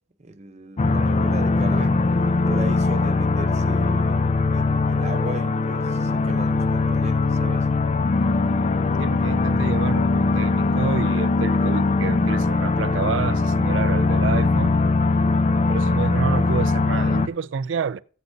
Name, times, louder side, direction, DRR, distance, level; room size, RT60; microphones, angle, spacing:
voice 1, 0.2-2.0 2.5-7.7, right 2 dB, 35° right, 0.7 m, -37 dB
sound 1, 0.8-17.3, left 3 dB, 35° left, 0.4 m, -21 dB
voice 2, 9.0-14.8 15.7-18.0, right 6 dB, 80° right, 0.4 m, -29 dB
14.5 x 8.0 x 2.6 m
head